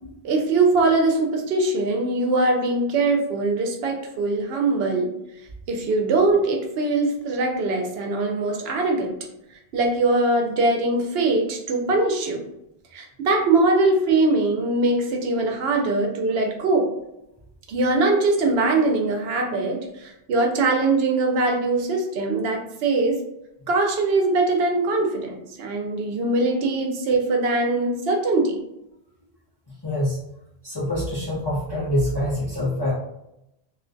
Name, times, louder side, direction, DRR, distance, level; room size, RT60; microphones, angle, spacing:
voice 1, 0.2-5.1 5.7-9.1 9.7-12.4 12.9-16.9 17.7-23.2 23.7-28.6, right 2 dB, 75° right, 2 dB, 0.8 m, -22 dB
voice 2, 29.8-30.2 30.6-32.9, left 1 dB, 30° left, -9 dB, 0.6 m, -25 dB
2.4 x 2.2 x 2.5 m, 0.85 s
omnidirectional pair, 1.1 m